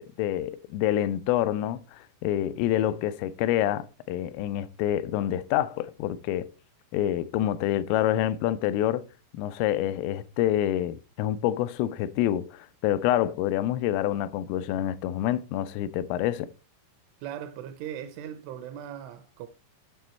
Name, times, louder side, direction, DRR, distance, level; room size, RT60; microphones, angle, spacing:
voice 1, 0.0-6.5 6.9-9.0 9.3-16.5, left 12 dB, 85° left, 3.1 m, -27 dB
voice 2, 17.2-19.5, right 10 dB, 85° right, 3.0 m, -38 dB
9.3 x 6.1 x 4.3 m
omnidirectional pair, 5.8 m